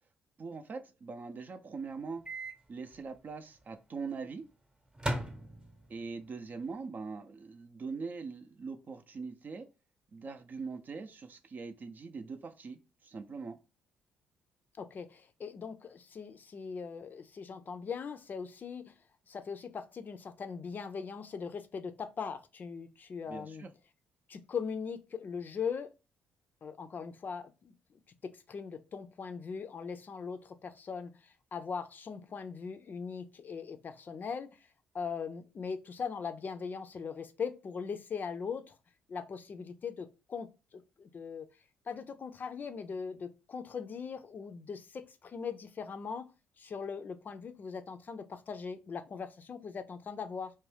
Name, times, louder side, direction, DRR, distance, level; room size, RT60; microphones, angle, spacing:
voice 1, 0.4-2.2 2.7-4.4 5.9-9.7 10.1-13.6 23.3-23.7, right 4 dB, 45° right, 0.5 m, -42 dB
Microwave oven, 2.2-2.6 2.9-3.0 4.9-6.0, right 1 dB, 20° right, 0.9 m, -36 dB
voice 2, 14.8-18.9 19.3-23.6 24.3-25.9 26.6-27.7 28.3-34.5 34.9-38.8 39.1-41.5 41.9-46.3 46.6-50.5, left 6 dB, 45° left, 0.4 m, -40 dB
2.5 x 2.2 x 3.3 m
hypercardioid pair, 50°, 4 cm